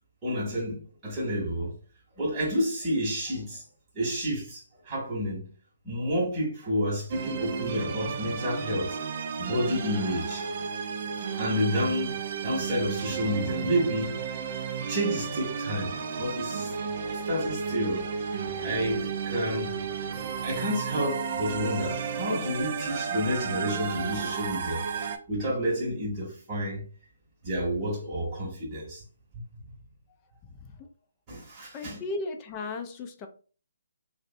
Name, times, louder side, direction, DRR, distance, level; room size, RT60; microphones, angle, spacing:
voice 1, 0.2-1.8 2.2-3.6 3.9-5.5 5.8-9.0 9.4-10.6 11.4-14.5 14.9-16.7 17.3-18.1 18.6-19.8 20.4-26.8 27.4-29.0 29.3-29.4 31.3-32.0, equal, 20° right, 1.0 m, -30 dB
sound 1, 7.1-25.2, right 6 dB, 45° right, 0.3 m, -33 dB
voice 2, 31.7-33.3, left 3 dB, 25° left, 0.4 m, -36 dB
2.4 x 2.0 x 2.6 m
figure-of-eight pair, 140°, 0 cm